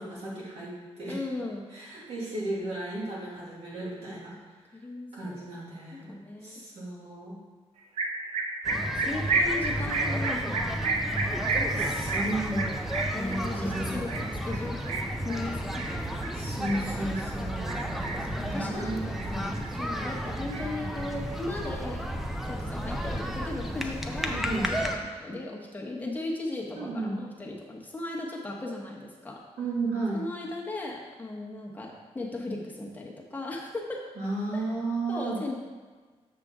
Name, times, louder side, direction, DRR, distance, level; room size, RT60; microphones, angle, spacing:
voice 1, 0.0-1.2 1.7-4.4 5.1-7.4 11.8-12.7 13.1-14.0 16.3-17.8 18.5-19.6 24.3-24.7 26.7-27.2 29.6-30.2 34.2-35.4, right 2 dB, 65° right, -6 dB, 2.5 m, -34 dB
voice 2, 1.1-1.7 4.7-5.4 5.9-6.6 8.7-12.2 13.1-14.9 15.2-16.0 18.2-19.3 19.8-22.0 22.5-29.4 30.1-34.0 34.5-34.6 35.1-35.6, left 2 dB, 15° left, -3 dB, 1.2 m, -37 dB
sound 1, 8.0-17.3 17.7-18.4 18.8-19.7 20.0-21.3, right 3 dB, 85° right, 0.7 m, -31 dB
sound 2, 8.6-25.0, equal, ahead, 0.5 m, -33 dB
6.7 x 6.7 x 3.7 m, 1.4 s
wide cardioid pair, 150°, 11 cm